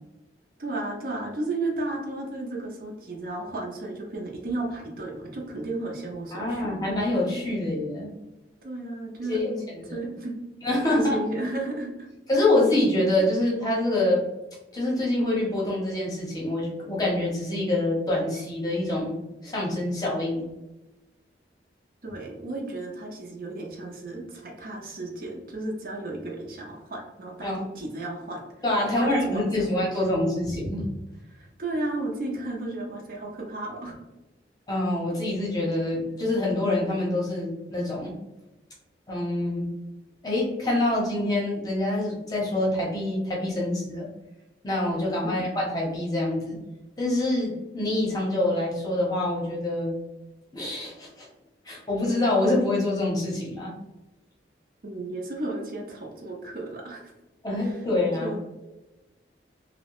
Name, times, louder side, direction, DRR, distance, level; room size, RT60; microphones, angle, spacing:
voice 1, 0.6-6.8 8.6-10.3 10.9-12.1 22.0-28.4 28.9-29.8 31.3-33.9 45.2-45.5 54.8-57.1 57.6-57.8 58.2-58.4, right 2 dB, 50° right, 0 dB, 0.5 m, -34 dB
voice 2, 6.3-8.1 9.3-9.5 9.8-9.9 10.6-11.2 12.3-14.2 14.7-20.5 27.4-27.6 28.6-30.8 34.7-38.1 39.1-39.6 40.2-44.1 44.6-46.6 47.0-49.9 50.5-51.3 51.7-53.7 57.4-58.4, left 1 dB, 20° left, -4 dB, 0.7 m, -26 dB
2.7 x 2.0 x 2.9 m, 1.0 s
head